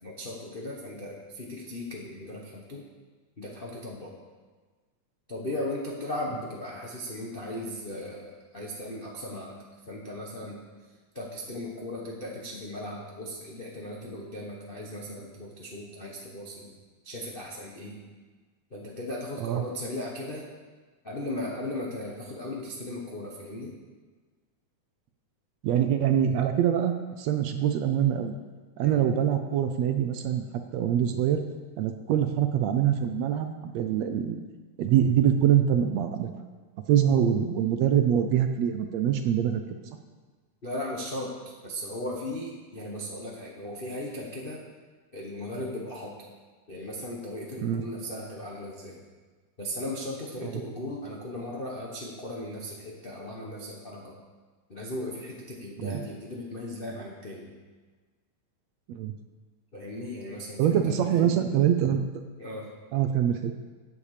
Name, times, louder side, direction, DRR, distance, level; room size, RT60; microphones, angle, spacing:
voice 1, 0.0-2.8 3.4-4.1 5.3-9.6 9.9-10.6 11.1-16.7 17.0-18.0 18.7-20.5 21.0-23.7 28.8-29.0 40.6-44.6 45.1-46.2 46.7-49.0 49.6-54.2 54.7-57.6 59.7-61.3 62.4-62.7, left 1 dB, 65° left, -3 dB, 0.5 m, -37 dB
voice 2, 25.6-28.4 28.8-30.4 30.7-31.4 31.8-34.4 34.8-36.3 36.9-39.6 47.6-47.8 50.4-50.5 55.8-56.0 58.9-59.1 60.6-62.0 62.9-63.5, right 9 dB, 75° right, 7 dB, 1.7 m, -24 dB
14.0 x 8.7 x 5.0 m, 1.4 s
omnidirectional pair, 3.5 m